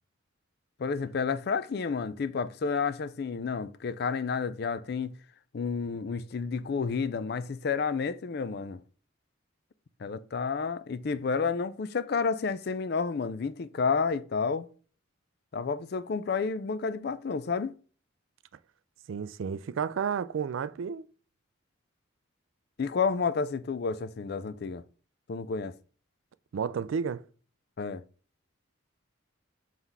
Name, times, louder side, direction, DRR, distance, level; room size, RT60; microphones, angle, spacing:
voice 1, 0.8-5.1 5.5-8.8 10.0-14.7 15.5-17.8 22.8-24.8 25.3-25.7 27.8-28.0, left 5 dB, 50° left, 0.4 m, -30 dB
voice 2, 19.1-21.1 26.5-27.2, right 6 dB, 70° right, 0.3 m, -31 dB
4.6 x 4.0 x 5.4 m
head